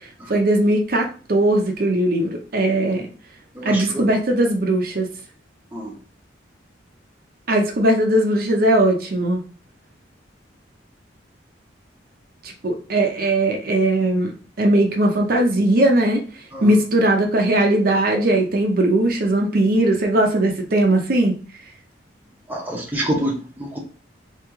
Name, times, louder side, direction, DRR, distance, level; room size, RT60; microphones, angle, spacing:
voice 1, 0.3-3.0 3.6-5.1 7.5-9.4 12.4-14.3 14.6-16.2 16.6-21.4, right 1 dB, 50° right, 0.6 m, -19 dB
voice 2, 3.5-4.1 5.7-6.0 16.5-16.7 22.5-23.8, equal, 10° right, 0.7 m, -27 dB
3.0 x 2.8 x 3.5 m
head